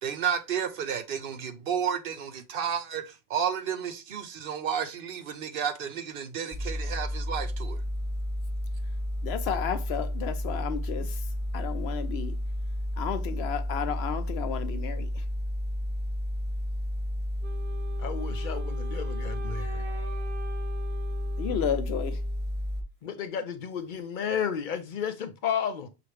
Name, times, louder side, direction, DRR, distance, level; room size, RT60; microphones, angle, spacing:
voice 1, 0.0-7.8, right 8 dB, 65° right, 0.8 m, -32 dB
sound 1, 6.5-22.8, left 1 dB, 10° right, 0.6 m, -32 dB
voice 2, 9.2-11.2 11.5-12.3 13.0-15.2 21.4-22.2, left 8 dB, 90° left, 0.9 m, -32 dB
Wind instrument woodwind instrument, 17.4-22.5, left 1 dB, 85° right, 1.1 m, -44 dB
voice 3, 18.0-19.8 23.0-25.9, left 7 dB, 60° left, 0.7 m, -32 dB
5.6 x 2.5 x 3.2 m
omnidirectional pair, 1.0 m